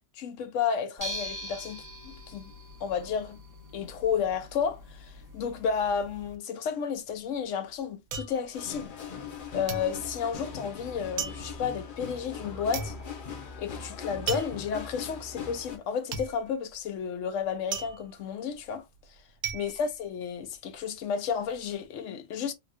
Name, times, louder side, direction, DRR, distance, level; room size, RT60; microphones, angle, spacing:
voice 1, 0.2-2.5 2.8-3.4 3.7-8.9 9.5-13.0 13.6-18.8 19.5-22.5, left 7 dB, 85° left, 1.0 m, -32 dB
sound 1, 1.0-6.4, equal, 20° right, 0.7 m, -43 dB
sound 2, 7.0-9.4 9.7-20.8 21.1-21.7, right 6 dB, 70° right, 0.9 m, -39 dB
sound 3, 8.5-15.8, left 6 dB, 55° left, 0.7 m, -40 dB
3.4 x 2.3 x 2.4 m
omnidirectional pair, 1.3 m